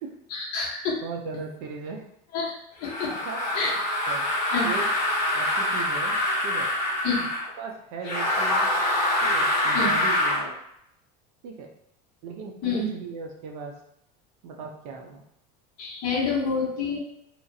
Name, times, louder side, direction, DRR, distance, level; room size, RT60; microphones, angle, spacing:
voice 1, 0.3-1.0 2.3-2.5 2.8-3.1 3.5-3.8 4.5-4.7 7.0-7.3 9.7-9.9 12.6-12.9 15.8-17.0, left 4 dB, 45° left, -3 dB, 0.9 m, -27 dB
voice 2, 1.0-2.1 3.1-3.6 4.1-4.3 4.6-4.9 5.3-6.2 6.4-6.7 7.2-7.3 7.6-8.7 9.2-10.5 11.4-11.7 12.2-13.8 14.4-15.2, right 4 dB, 60° right, 3 dB, 0.5 m, -37 dB
sound 1, 2.8-7.5 8.0-10.4, left 1 dB, 75° left, 1.1 m, -25 dB
2.9 x 2.4 x 2.6 m, 0.76 s
cardioid pair, 170°, 21 cm